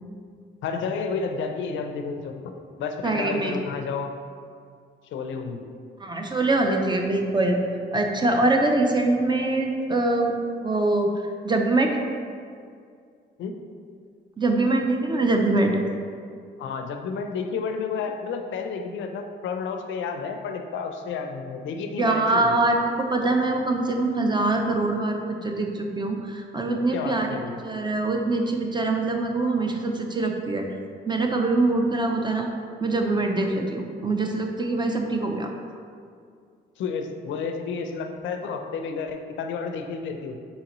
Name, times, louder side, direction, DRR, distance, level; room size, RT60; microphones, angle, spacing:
voice 1, 0.6-2.4 2.8-4.1 5.1-5.6 13.4-13.6 16.6-22.6 26.9-27.6 36.8-40.4, left 5 dB, 70° left, 5 dB, 0.5 m, -31 dB
voice 2, 3.0-3.5 6.0-7.6 7.9-10.3 10.6-11.1 11.4-12.0 14.4-15.8 22.0-27.4 27.6-30.6 31.1-32.5 32.8-35.5, right 2 dB, 20° right, 2 dB, 0.5 m, -23 dB
4.1 x 3.8 x 3.0 m, 2.2 s
cardioid pair, 90°, 20 cm